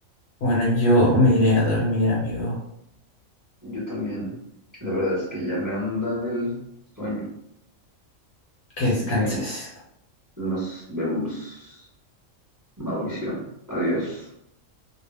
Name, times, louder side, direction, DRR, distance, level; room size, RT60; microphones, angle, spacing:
voice 1, 0.4-2.6 8.8-9.7, left 1 dB, 60° left, -4 dB, 0.9 m, -21 dB
voice 2, 3.6-4.3 4.8-6.5 7.0-7.3 8.9-9.4 10.4-11.9 12.8-14.3, equal, 15° right, -9 dB, 1.1 m, -28 dB
2.3 x 2.0 x 3.3 m, 0.75 s
omnidirectional pair, 1.4 m